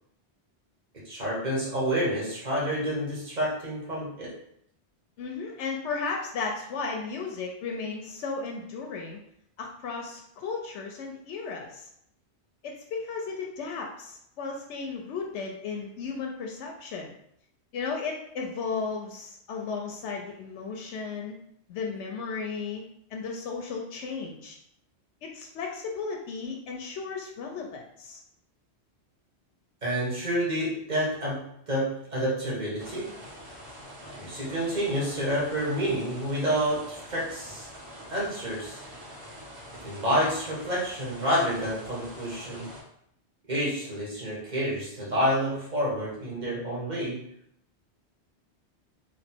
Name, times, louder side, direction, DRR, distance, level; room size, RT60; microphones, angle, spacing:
voice 1, 1.0-4.3 29.8-33.1 34.2-37.7 38.1-38.8 39.8-42.7 43.5-47.2, equal, 40° right, -6 dB, 1.6 m, -29 dB
voice 2, 5.2-9.2 9.6-11.9 12.6-17.1 17.7-21.4 21.7-22.8 23.1-24.6 25.2-28.2, left 4 dB, 90° left, 1 dB, 0.9 m, -35 dB
sound 1, 32.8-42.8, equal, 90° right, 1.4 m, -45 dB
3.1 x 3.0 x 4.3 m, 0.72 s
omnidirectional pair, 1.2 m